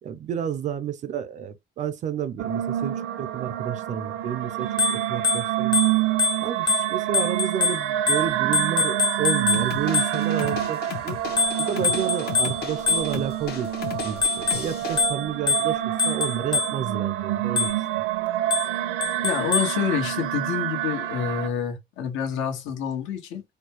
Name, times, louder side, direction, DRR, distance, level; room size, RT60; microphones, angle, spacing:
voice 1, 0.0-5.9 6.4-13.7 14.0-18.0, right 8 dB, 40° right, 0.4 m, -31 dB
sound 1, 2.4-21.5, right 13 dB, 85° right, 0.7 m, -27 dB
Bicycle bell, 4.6-10.5 11.4-13.5 14.0-17.0 17.6-18.0 18.5-19.8, left 4 dB, 20° left, 0.5 m, -26 dB
sound 2, 9.5-15.0, left 8 dB, 50° left, 0.8 m, -36 dB
voice 2, 19.2-23.4, left 7 dB, 75° left, 1.3 m, -28 dB
4.3 x 2.2 x 2.9 m
cardioid pair, 165°, 20 cm